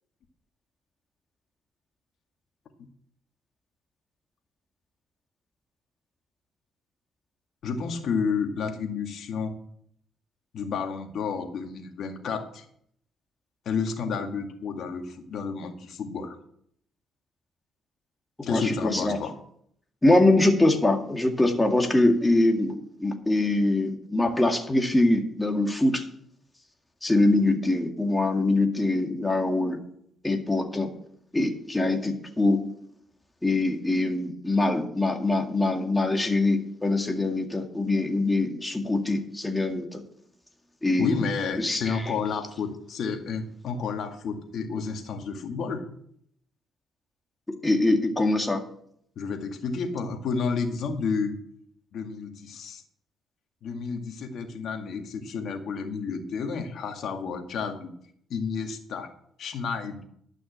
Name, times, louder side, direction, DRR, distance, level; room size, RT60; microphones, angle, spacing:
voice 1, 7.6-9.6 10.5-12.6 13.7-16.4 18.4-19.3 41.0-45.8 49.2-51.4 51.9-52.8 53.6-57.9 58.3-59.1 59.4-60.0, left 5 dB, 70° left, 4 dB, 2.0 m, -31 dB
voice 2, 18.5-19.2 20.0-22.8 23.0-26.0 27.0-29.8 30.2-30.9 31.3-32.6 33.4-40.0 40.8-41.1 41.6-41.8 47.6-48.6, left 2 dB, 15° left, 3 dB, 2.0 m, -23 dB
12.0 x 6.2 x 7.9 m, 0.68 s
cardioid pair, 90°, 0 cm